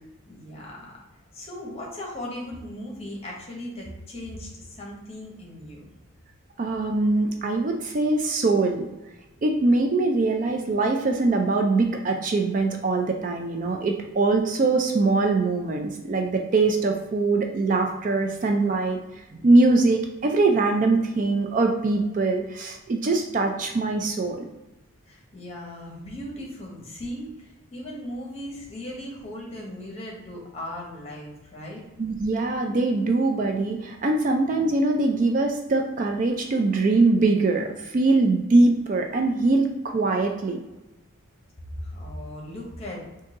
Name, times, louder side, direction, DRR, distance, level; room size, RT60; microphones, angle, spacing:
voice 1, 0.3-1.0 1.3-5.9 25.1-31.8 41.8-43.0, left 1 dB, 30° left, -2 dB, 1.0 m, -37 dB
voice 2, 6.6-8.9 9.4-19.0 19.3-24.5 32.0-40.6, right 3 dB, 40° right, 3 dB, 0.3 m, -22 dB
3.8 x 2.7 x 3.7 m, 1.0 s
head